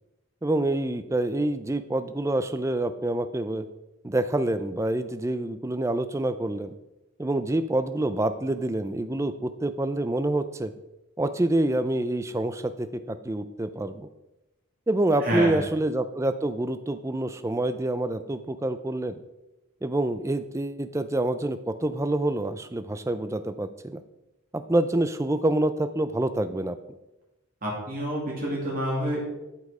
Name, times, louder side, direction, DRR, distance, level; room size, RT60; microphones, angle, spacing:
voice 1, 0.4-3.7 4.0-6.7 7.2-10.7 11.2-14.1 14.9-19.2 19.8-24.0 24.5-26.8, right 1 dB, 15° right, 11 dB, 0.3 m, -27 dB
voice 2, 15.2-15.6 27.6-29.2, equal, 40° right, -4 dB, 2.5 m, -28 dB
11.5 x 5.3 x 4.8 m, 0.99 s
head